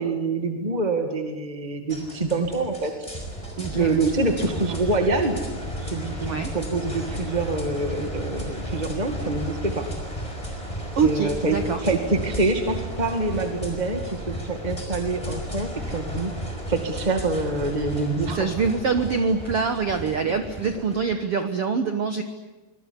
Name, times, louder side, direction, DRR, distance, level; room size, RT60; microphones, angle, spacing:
voice 1, 0.0-2.9 3.7-5.4 5.8-9.9 11.0-16.3 16.7-18.5 20.2-20.3, right 3 dB, 20° right, 5 dB, 1.0 m, -26 dB
sound 1, 1.9-21.1, equal, 5° left, 5.5 m, -34 dB
voice 2, 3.6-3.9 4.7-4.8 6.2-6.5 11.0-11.8 18.2-22.2, right 5 dB, 90° right, 7 dB, 1.3 m, -25 dB
25.5 x 20.5 x 9.9 m, 1.2 s
omnidirectional pair, 4.6 m